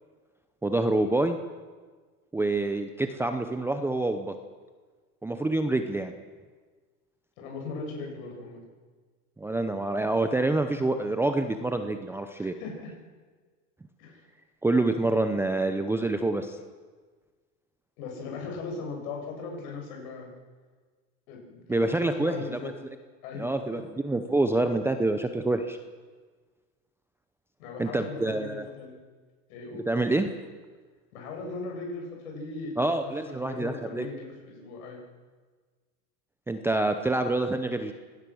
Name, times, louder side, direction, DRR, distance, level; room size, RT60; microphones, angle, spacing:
voice 1, 0.6-1.4 2.3-4.3 5.2-6.1 9.4-12.5 14.6-16.6 21.7-22.7 23.3-25.8 27.8-28.7 29.9-30.3 32.8-34.1 36.5-37.9, right 2 dB, 5° right, 7 dB, 0.7 m, -27 dB
voice 2, 7.4-8.6 12.4-13.0 14.0-14.2 18.0-20.3 21.3-22.7 23.2-23.8 27.6-29.0 29.5-29.8 31.1-35.0, left 4 dB, 60° left, 0 dB, 7.8 m, -39 dB
25.0 x 18.5 x 6.4 m, 1.5 s
supercardioid pair, 130°, 46 cm